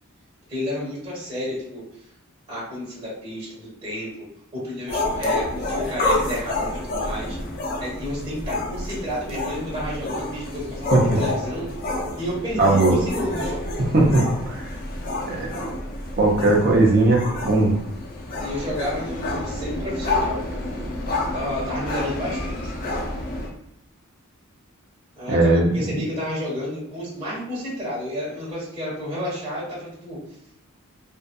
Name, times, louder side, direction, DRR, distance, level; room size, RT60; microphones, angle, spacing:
voice 1, 0.5-1.8 2.5-4.2 4.5-7.4 7.8-11.7 12.2-13.6 18.4-20.8 21.3-22.7 25.2-30.2, left 1 dB, 25° right, -8 dB, 1.3 m, -31 dB
sound 1, 4.9-23.5, left 2 dB, 40° left, 0.5 m, -28 dB
voice 2, 12.6-12.9 13.8-14.7 15.3-15.8 16.2-17.7 25.3-25.7, right 2 dB, 45° right, -2 dB, 0.7 m, -19 dB
2.6 x 2.3 x 2.3 m, 0.78 s
head